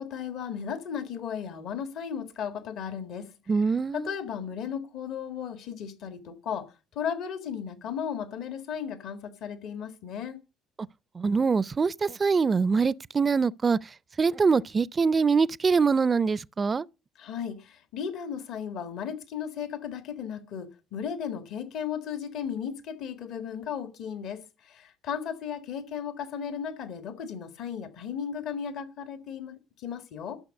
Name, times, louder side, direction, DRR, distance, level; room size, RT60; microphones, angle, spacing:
voice 1, 0.0-3.3 3.9-10.4 17.2-30.4, left 7 dB, 65° left, 1.5 m, -35 dB
voice 2, 3.5-4.1 11.1-13.8 14.2-16.8, right 5 dB, 35° right, 0.5 m, -24 dB
12.5 x 6.3 x 6.5 m
hypercardioid pair, 60°, 0 cm